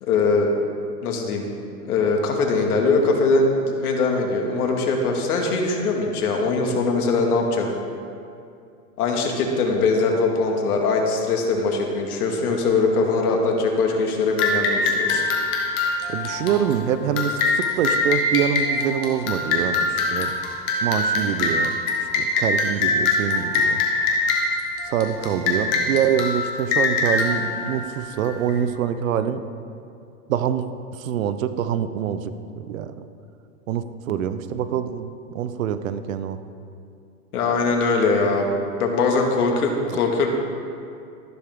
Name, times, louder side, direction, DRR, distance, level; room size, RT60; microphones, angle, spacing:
voice 1, 0.0-0.5 1.0-1.5 1.9-3.5 3.8-7.7 9.0-15.2 37.3-38.5 38.8-40.3, left 3 dB, 70° left, 1 dB, 2.3 m, -21 dB
sound 1, 14.4-28.5, left 3 dB, 10° left, 0.4 m, -24 dB
voice 2, 16.1-20.3 20.8-21.7 22.2-23.8 24.8-29.4 30.3-30.6 30.9-32.3 32.6-32.9 33.7-36.4 39.9-40.0, right 9 dB, 55° right, 11 dB, 0.8 m, -25 dB
13.5 x 11.5 x 3.7 m, 2.5 s
hypercardioid pair, 150°, 47 cm